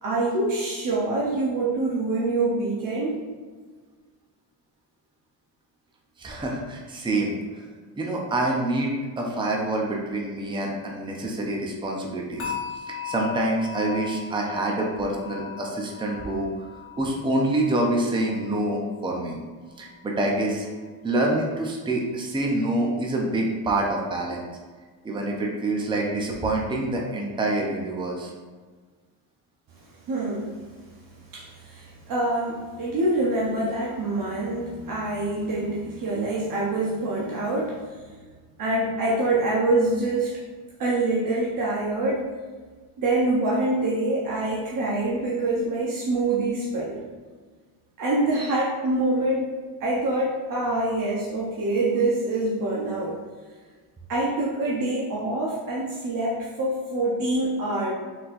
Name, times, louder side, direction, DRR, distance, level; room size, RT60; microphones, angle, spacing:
voice 1, 0.0-3.2 30.1-30.6 31.3-38.2 38.6-40.3 40.8-42.3 43.0-47.0 48.0-49.5 49.8-53.2 54.1-57.9, right 2 dB, 50° right, -4 dB, 0.8 m, -25 dB
voice 2, 6.2-7.4 8.0-12.5 13.0-16.5 17.0-19.4 19.8-20.7 21.0-24.5 25.0-28.3, right 2 dB, 10° right, -1 dB, 0.5 m, -26 dB
sound 1, 12.4-19.5 19.8-20.2 20.6-20.8, left 7 dB, 35° left, 1.3 m, -38 dB
4.3 x 4.1 x 2.5 m, 1.4 s
cardioid pair, 140°, 42 cm